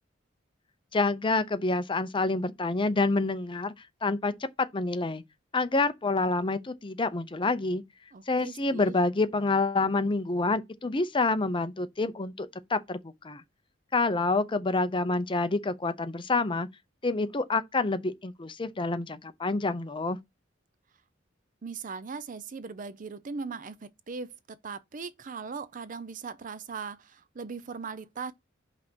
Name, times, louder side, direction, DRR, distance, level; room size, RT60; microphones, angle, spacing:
voice 1, 0.9-3.7 4.0-4.3 4.7-5.2 5.5-7.8 8.3-13.4 13.9-16.7 17.0-20.2, left 3 dB, 25° left, 0.7 m, -27 dB
voice 2, 8.1-8.9 21.6-28.3, right 5 dB, 45° right, 0.5 m, -39 dB
5.5 x 4.1 x 6.1 m
head